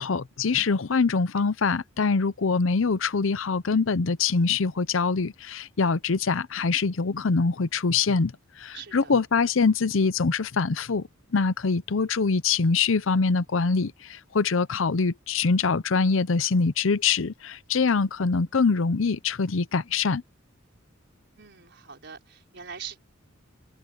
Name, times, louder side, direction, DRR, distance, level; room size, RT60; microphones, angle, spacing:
voice 1, 0.0-8.3 8.6-20.2, left 4 dB, 75° left, 0.7 m, -24 dB
voice 2, 8.7-9.1 21.4-23.0, right 7 dB, 60° right, 4.7 m, -42 dB
head